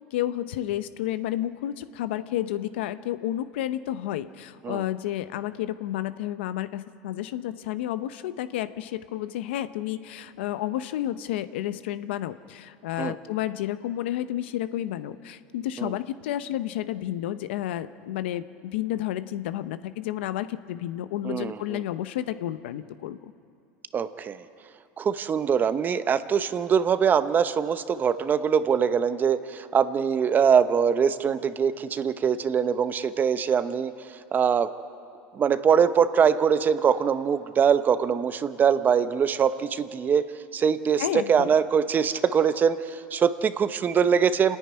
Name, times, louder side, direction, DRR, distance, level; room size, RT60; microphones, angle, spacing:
voice 1, 0.1-23.3 41.0-41.5, left 13 dB, 85° left, 13 dB, 0.7 m, -31 dB
voice 2, 21.2-21.8 23.9-24.4 25.0-33.9 34.3-34.7 35.3-40.3 40.5-44.6, right 7 dB, 30° right, 12 dB, 0.8 m, -23 dB
27.0 x 10.0 x 9.7 m, 2.5 s
supercardioid pair, 110°, 6 cm